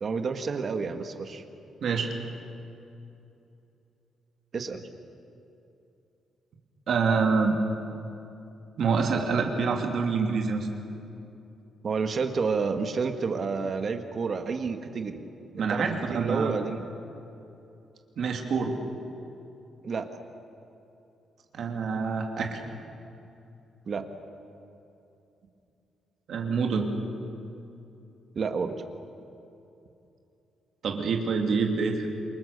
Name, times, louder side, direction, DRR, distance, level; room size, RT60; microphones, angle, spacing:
voice 1, 0.0-1.4 4.5-4.8 11.8-15.2 15.6-15.8 16.1-16.9 19.8-20.1 23.9-24.0 28.3-28.8, right 5 dB, 35° right, 7 dB, 1.5 m, -29 dB
voice 2, 1.8-2.1 6.9-7.6 8.8-10.7 15.6-16.5 18.2-18.8 21.5-22.6 26.3-26.9 30.8-32.1, right 5 dB, 55° right, 2 dB, 2.8 m, -26 dB
28.5 x 23.5 x 6.7 m, 2.8 s
cardioid pair, 175°, 0 cm